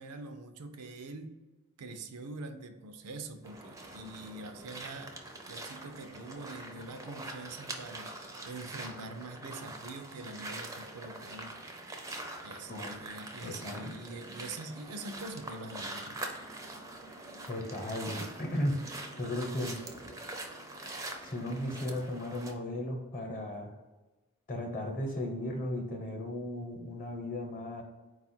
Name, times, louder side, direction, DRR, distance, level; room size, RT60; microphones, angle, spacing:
voice 1, 0.0-1.4 1.8-5.2 5.5-8.1 8.4-11.6 12.4-16.2, right 3 dB, 85° right, 7 dB, 0.5 m, -44 dB
sound 1, 3.4-22.5, right 2 dB, 15° right, 0.4 m, -44 dB
voice 2, 13.4-13.9 17.5-18.8 19.2-19.8 21.2-23.7 24.5-27.8, left 1 dB, 35° left, 2 dB, 0.9 m, -35 dB
4.3 x 2.4 x 4.2 m, 1.2 s
head